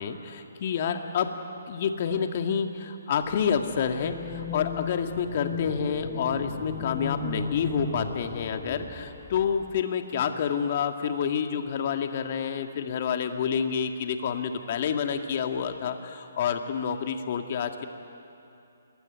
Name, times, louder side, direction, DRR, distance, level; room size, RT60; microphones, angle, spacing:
voice 1, 0.0-1.3 1.7-17.9, left 7 dB, 45° left, 6 dB, 2.0 m, -28 dB
sound 1, 3.8-9.8, left 3 dB, 10° left, 1.7 m, -36 dB
27.5 x 21.0 x 9.6 m, 2.7 s
figure-of-eight pair, 140°, 0 cm